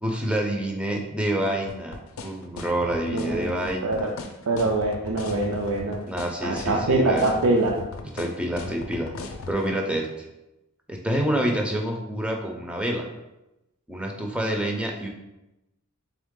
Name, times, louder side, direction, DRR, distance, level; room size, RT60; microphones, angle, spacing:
voice 1, 0.0-4.1 6.1-7.2 8.1-9.1 9.5-10.3 10.9-13.1 13.9-15.1, right 1 dB, 5° right, 1 dB, 0.4 m, -27 dB
sound 1, 1.7-9.6, left 4 dB, 65° left, 0.4 m, -37 dB
voice 2, 3.1-4.1 4.5-6.0 6.4-7.8, right 2 dB, 70° right, 0 dB, 0.4 m, -24 dB
3.6 x 3.3 x 3.6 m, 0.94 s
head